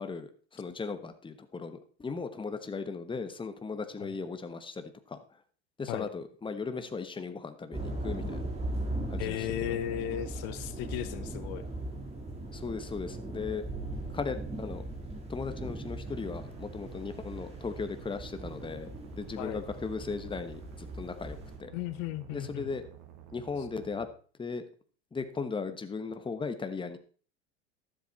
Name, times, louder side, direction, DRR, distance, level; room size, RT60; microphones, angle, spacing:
voice 1, 0.0-5.2 5.8-8.4 9.1-9.8 12.5-13.6 14.1-14.8 15.3-18.9 19.2-21.7 22.3-22.8 23.3-24.1 24.4-24.6 25.1-27.0, left 4 dB, 15° left, 9 dB, 1.3 m, -37 dB
sound 1, 7.7-21.6, right 1 dB, 20° right, 3.7 m, -39 dB
voice 2, 9.2-11.6 19.4-19.6 21.7-22.7, left 12 dB, 65° left, 13 dB, 1.0 m, -35 dB
sound 2, 16.0-24.1, right 10 dB, 60° right, 2.2 m, -51 dB
12.5 x 7.8 x 4.3 m, 0.42 s
hypercardioid pair, 90°, 33 cm